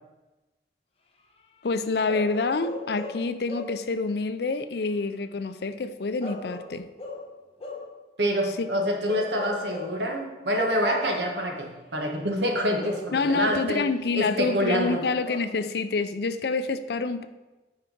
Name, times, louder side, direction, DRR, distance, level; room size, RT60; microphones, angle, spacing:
voice 1, 1.6-6.9 8.6-8.7 13.1-17.3, left 4 dB, 65° left, 11 dB, 0.5 m, -27 dB
Bark / Livestock farm animals working animals, 2.1-3.9 6.2-8.0 9.1-10.1 10.9-11.3 12.8-13.9 15.2-15.6, left 2 dB, 35° left, 1.0 m, -38 dB
voice 2, 8.2-13.8 14.1-15.0, equal, 75° right, 2 dB, 1.5 m, -26 dB
9.2 x 4.8 x 5.4 m, 1.1 s
head